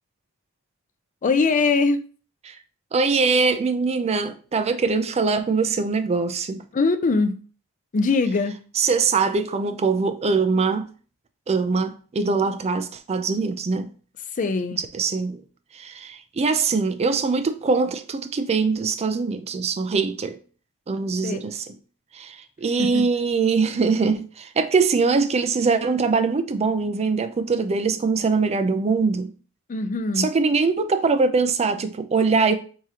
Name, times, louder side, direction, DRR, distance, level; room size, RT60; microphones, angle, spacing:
voice 1, 1.2-2.0 6.7-7.4 7.9-8.6 14.3-14.8 21.2-21.4 22.8-23.1 29.7-30.3, left 3 dB, 35° left, 0.4 m, -22 dB
voice 2, 2.9-6.6 8.8-10.9 11.5-13.9 14.9-15.4 15.7-20.4 20.9-21.6 22.1-29.3 30.2-32.6, right 4 dB, 30° right, 0.4 m, -22 dB
4.8 x 3.6 x 2.8 m
head